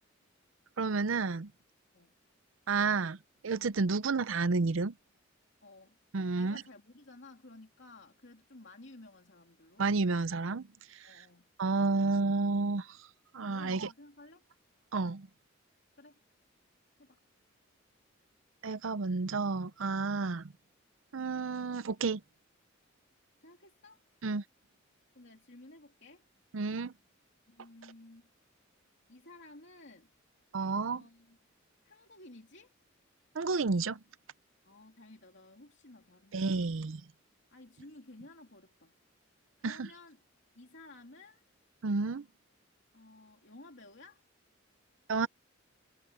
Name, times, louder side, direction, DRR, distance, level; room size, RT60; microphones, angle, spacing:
voice 1, 0.8-1.5 2.7-3.2 3.4-4.9 6.1-6.6 9.8-11.1 11.6-13.0 13.3-13.9 14.9-15.3 18.6-20.5 21.1-22.2 24.2-24.4 26.5-26.9 30.5-31.0 33.3-34.0 36.3-37.0 39.6-39.9 41.8-42.2 45.1-45.3, right 4 dB, 75° right, 0.6 m, -31 dB
voice 2, 5.6-6.0 6.3-9.8 11.0-11.5 13.5-14.5 16.0-16.2 17.0-17.2 23.4-24.0 25.1-26.3 27.5-28.3 29.1-30.1 30.7-31.4 31.8-32.7 34.6-36.8 37.5-38.9 39.6-40.2 40.5-41.4 42.9-44.2, left 2 dB, 60° left, 2.9 m, -54 dB
head